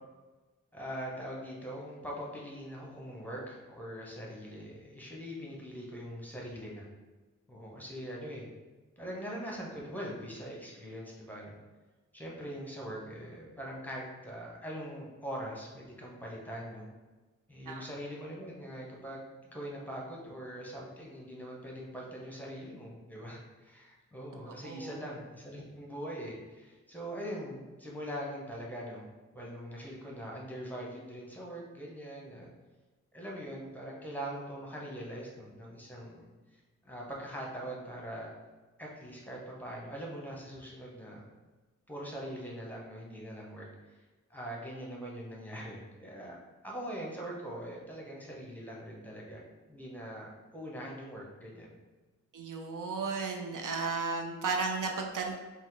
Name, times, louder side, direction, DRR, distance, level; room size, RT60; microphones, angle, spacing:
voice 1, 0.7-6.8 7.5-8.5 9.0-11.6 12.1-16.9 17.5-19.3 19.5-29.1 29.3-32.5 33.1-36.3 36.8-38.3 38.8-41.3 41.9-44.0 44.3-46.4 46.6-49.4 49.7-51.7, equal, 5° left, -3 dB, 0.9 m, -42 dB
voice 2, 24.6-25.0 52.3-55.4, right 4 dB, 85° right, 2 dB, 0.6 m, -34 dB
5.0 x 2.1 x 3.9 m, 1.2 s
wide cardioid pair, 100°, 31 cm